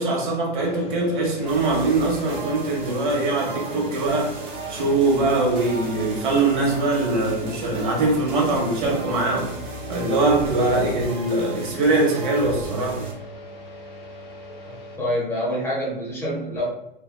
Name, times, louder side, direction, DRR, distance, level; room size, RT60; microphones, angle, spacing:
voice 1, 0.0-4.4 4.7-9.6 9.9-13.0 14.6-14.8, right 2 dB, 55° right, 1.0 m, -22 dB
sound 1, 0.5-15.0, left 1 dB, 85° left, 1.1 m, -41 dB
sound 2, 1.5-13.1, right 3 dB, 20° right, 0.4 m, -35 dB
voice 2, 15.0-16.7, equal, 10° left, 0.7 m, -26 dB
3.3 x 2.1 x 2.2 m
hypercardioid pair, 125°, 29 cm